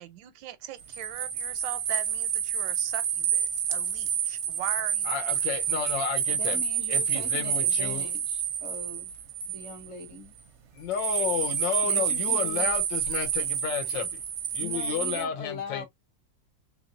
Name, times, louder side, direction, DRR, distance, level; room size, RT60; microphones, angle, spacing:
voice 1, 0.0-5.4, right 11 dB, 85° right, 1.3 m, -40 dB
sound 1, 0.8-10.0 10.9-15.2, right 8 dB, 60° right, 0.7 m, -29 dB
voice 2, 5.0-6.6 6.9-8.1 10.7-14.2 14.5-15.8, left 8 dB, 80° left, 1.5 m, -32 dB
voice 3, 6.3-9.1 9.5-10.3 11.8-12.7 14.6-15.8, left 4 dB, 45° left, 1.1 m, -41 dB
3.4 x 3.3 x 2.4 m
omnidirectional pair, 2.0 m